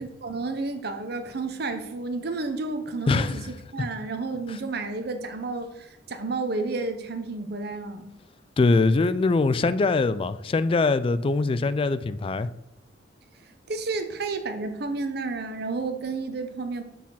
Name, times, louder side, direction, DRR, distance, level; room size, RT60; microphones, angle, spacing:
voice 1, 0.0-3.4 3.7-8.1 13.7-16.8, right 3 dB, 60° right, 8 dB, 0.8 m, -31 dB
voice 2, 3.1-3.4 4.5-4.6 8.6-12.5, left 3 dB, 30° left, 14 dB, 0.3 m, -22 dB
6.2 x 4.2 x 5.7 m, 0.88 s
head